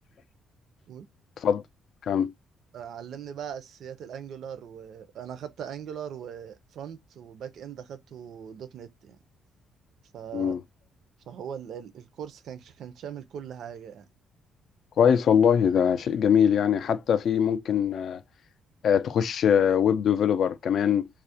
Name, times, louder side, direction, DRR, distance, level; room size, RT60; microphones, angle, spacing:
voice 1, 2.7-9.2 10.1-10.6 11.3-14.0, right 8 dB, 65° right, 0.4 m, -40 dB
voice 2, 15.0-18.2 18.8-21.1, left 8 dB, 55° left, 0.3 m, -22 dB
2.3 x 2.0 x 2.6 m
cardioid pair, 135°, 0 cm